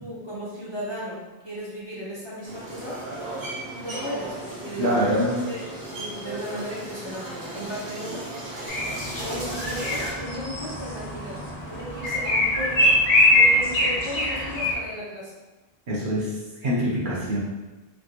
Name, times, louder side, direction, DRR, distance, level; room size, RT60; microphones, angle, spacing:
voice 1, 0.0-3.0 3.7-4.9 5.5-5.6 5.9-8.2 9.2-11.4 11.7-12.9 13.2-15.3, equal, 30° left, -7 dB, 0.6 m, -35 dB
sound 1, 2.4-10.1, right 1 dB, 85° right, 1.2 m, -36 dB
voice 2, 4.8-5.4 15.9-17.4, equal, 55° right, -5 dB, 0.8 m, -24 dB
sound 2, 8.7-14.7, left 1 dB, 65° left, 1.0 m, -23 dB
3.4 x 2.7 x 2.4 m, 1.2 s
omnidirectional pair, 1.1 m